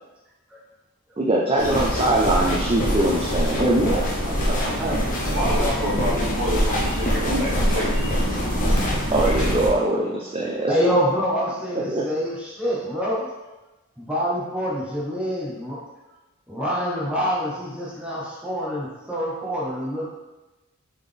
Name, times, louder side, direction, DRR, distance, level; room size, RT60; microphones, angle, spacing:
voice 1, 1.2-5.0 9.1-10.8 11.7-12.0, right 1 dB, 25° right, -3 dB, 0.4 m, -22 dB
sound 1, 1.6-9.7, equal, 35° left, 0.8 m, -24 dB
voice 2, 5.3-8.2, equal, 50° right, -6 dB, 1.3 m, -28 dB
voice 3, 10.7-13.3 14.0-15.8 16.5-20.1, equal, 5° right, -7 dB, 0.8 m, -26 dB
4.0 x 3.7 x 3.4 m, 1.1 s
head